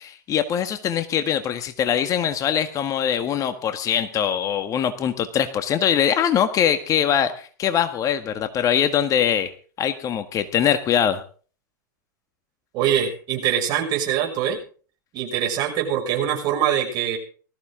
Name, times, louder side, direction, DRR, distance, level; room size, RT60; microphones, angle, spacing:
voice 1, 0.0-9.5 9.8-11.2, left 9 dB, 35° left, 9 dB, 1.6 m, -22 dB
voice 2, 12.7-14.6 15.1-17.2, right 10 dB, 45° right, 2 dB, 6.3 m, -23 dB
20.0 x 14.5 x 3.8 m, 0.41 s
hypercardioid pair, 105°, 10 cm